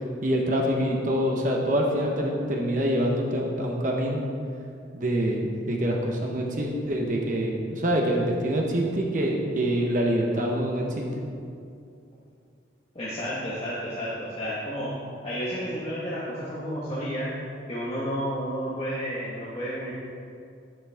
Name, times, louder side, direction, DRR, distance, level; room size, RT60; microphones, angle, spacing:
voice 1, 0.2-4.2 4.9-11.0, equal, 40° right, -1 dB, 1.2 m, -25 dB
voice 2, 13.0-14.9 15.2-17.3 17.7-19.9, equal, 30° left, -8 dB, 1.6 m, -31 dB
12.5 x 10.5 x 3.6 m, 2.4 s
head